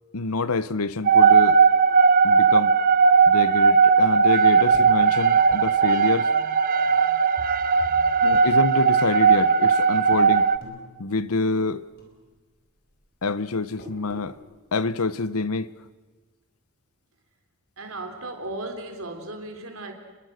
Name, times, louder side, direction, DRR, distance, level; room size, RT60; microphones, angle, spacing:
voice 1, 0.1-1.6 2.2-2.8 3.3-6.3 8.2-10.5 11.0-11.8 13.2-14.4 14.7-15.7, left 3 dB, 85° left, 0.9 m, -27 dB
sound 1, 1.1-10.6, right 5 dB, 40° right, 0.7 m, -18 dB
sound 2, 4.7-7.6 7.9-8.7 9.2-10.1 10.4-11.7 12.0-14.4, left 1 dB, 45° left, 5.0 m, -47 dB
voice 2, 17.8-19.9, right 2 dB, 70° right, 3.5 m, -36 dB
30.0 x 21.5 x 6.5 m
head